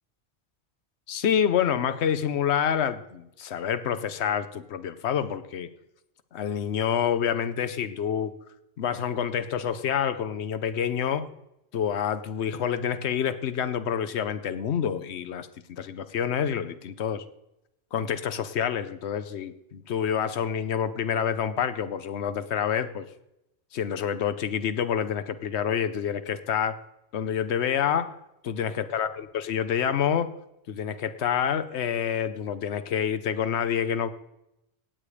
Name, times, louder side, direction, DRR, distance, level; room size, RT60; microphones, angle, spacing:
voice 1, 1.1-5.7 6.3-8.3 8.8-11.3 11.7-17.2 17.9-23.1 23.7-26.8 27.1-28.1 28.4-30.3 30.7-34.1, left 8 dB, 75° left, 11 dB, 1.1 m, -27 dB
16.5 x 8.5 x 5.0 m, 0.87 s
omnidirectional pair, 1.1 m